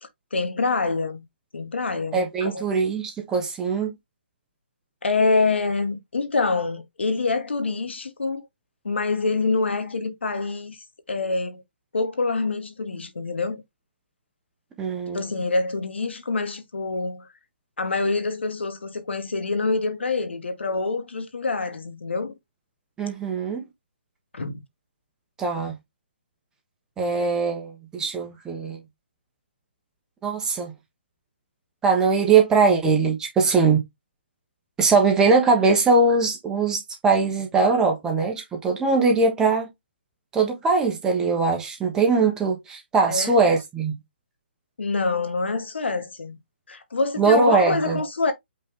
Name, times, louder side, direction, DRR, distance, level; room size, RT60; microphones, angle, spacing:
voice 1, 0.0-1.2 1.5-2.6 5.0-8.4 8.8-10.8 11.1-11.6 11.9-13.6 15.1-17.3 17.8-22.3 24.3-24.6 43.1-43.4 44.8-46.4 46.7-48.3, left 3 dB, 80° left, 1.4 m, -26 dB
voice 2, 2.1-3.9 14.8-15.2 23.0-23.6 25.4-25.7 27.0-28.8 30.2-30.7 31.8-33.8 34.8-39.7 40.3-43.9 47.2-48.0, right 4 dB, 10° right, 1.1 m, -21 dB
5.3 x 2.7 x 3.7 m
hypercardioid pair, 150°, 6 cm